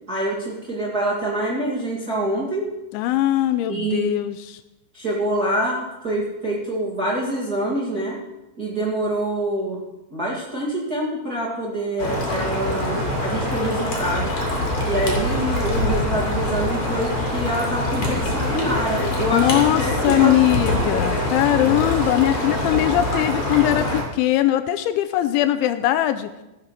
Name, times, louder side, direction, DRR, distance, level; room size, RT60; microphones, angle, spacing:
voice 1, 0.1-2.7 3.7-4.1 4.9-8.2 8.6-9.8 10.1-14.3 14.8-20.5, right 1 dB, 35° right, -4 dB, 1.5 m, -26 dB
voice 2, 2.9-4.6 19.3-26.3, left 13 dB, 85° left, 10 dB, 2.9 m, -20 dB
sound 1, 12.0-24.0, left 1 dB, 40° left, 3.6 m, -24 dB
16.0 x 7.5 x 6.6 m, 1.0 s
omnidirectional pair, 5.5 m